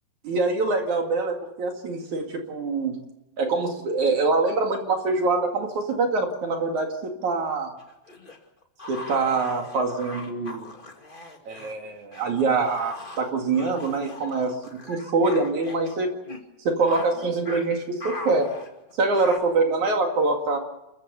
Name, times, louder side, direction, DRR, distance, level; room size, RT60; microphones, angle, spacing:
voice 1, 0.2-3.0 3.4-7.7 8.9-10.7 11.5-16.1 16.6-18.5 19.0-20.6, right 3 dB, 55° right, 3 dB, 3.4 m, -24 dB
sound 1, 7.8-11.7 12.1-15.9 16.2-16.4 16.8-17.1 17.5-17.7 18.0-19.4, left 2 dB, 20° left, 1.6 m, -39 dB
29.5 x 14.5 x 6.9 m, 0.97 s
omnidirectional pair, 4.2 m